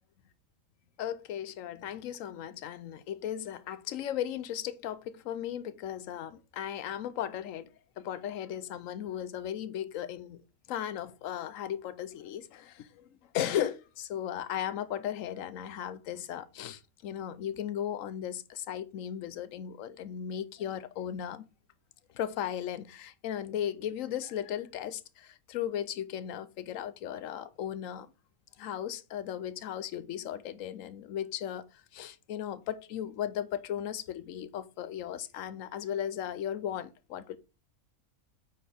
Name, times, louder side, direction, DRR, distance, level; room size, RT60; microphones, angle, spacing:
voice 1, 1.0-7.7 8.0-10.4 10.7-13.1 13.3-21.4 22.1-28.1 28.6-31.7 31.9-37.4, left 10 dB, 70° left, 1.0 m, -36 dB
9.1 x 4.3 x 3.4 m
omnidirectional pair, 1.5 m